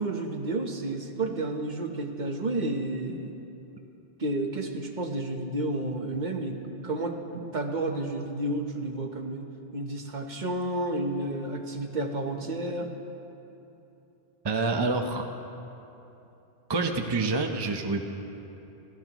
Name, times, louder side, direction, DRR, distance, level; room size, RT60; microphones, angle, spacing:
voice 1, 0.0-3.4 4.2-6.6 6.8-12.9, right 2 dB, 45° right, 4 dB, 1.1 m, -31 dB
voice 2, 14.4-15.3 16.7-18.0, right 3 dB, 30° right, 4 dB, 0.7 m, -27 dB
28.5 x 13.5 x 3.0 m, 2.9 s
omnidirectional pair, 1.1 m